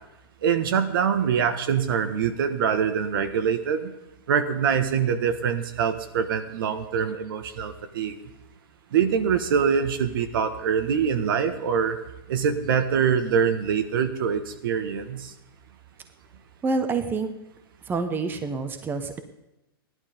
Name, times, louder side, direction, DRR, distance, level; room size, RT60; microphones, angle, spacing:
voice 1, 0.4-3.9 4.3-8.2 8.9-12.0 12.3-15.3, right 7 dB, 65° right, 9 dB, 1.5 m, -24 dB
voice 2, 16.6-17.3 17.9-19.2, right 4 dB, 15° right, 8 dB, 1.1 m, -27 dB
15.0 x 11.5 x 5.2 m, 0.93 s
hypercardioid pair, 130°, 12 cm